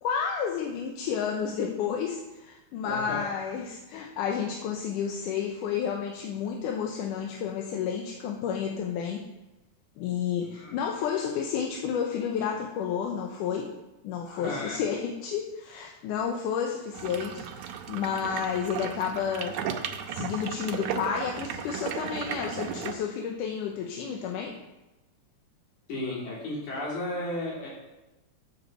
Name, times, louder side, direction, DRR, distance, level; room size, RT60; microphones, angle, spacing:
voice 1, 0.0-9.3 10.0-13.7 14.0-19.6 20.1-24.6, left 7 dB, 85° left, 1 dB, 2.4 m, -31 dB
voice 2, 2.8-3.3 10.4-10.7 14.2-14.8 25.9-27.7, left 1 dB, 70° left, -5 dB, 4.5 m, -34 dB
sound 1, 16.9-22.9, right 8 dB, 75° right, 2.1 m, -35 dB
8.5 x 7.4 x 6.7 m, 1.0 s
omnidirectional pair, 3.6 m